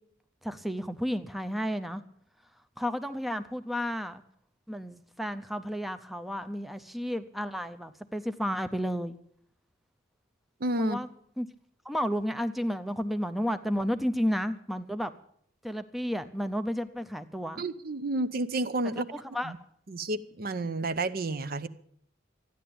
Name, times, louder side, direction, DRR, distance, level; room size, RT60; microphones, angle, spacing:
voice 1, 0.4-2.0 2.8-4.2 4.7-9.2 10.8-11.1 11.4-11.5 11.8-15.1 15.6-17.6 19.1-19.5, equal, ahead, 9 dB, 0.5 m, -32 dB
voice 2, 10.6-11.0 17.6-19.1 19.4-19.6 19.9-21.7, right 2 dB, 50° right, 13 dB, 0.7 m, -30 dB
14.0 x 10.0 x 8.6 m, 0.66 s
head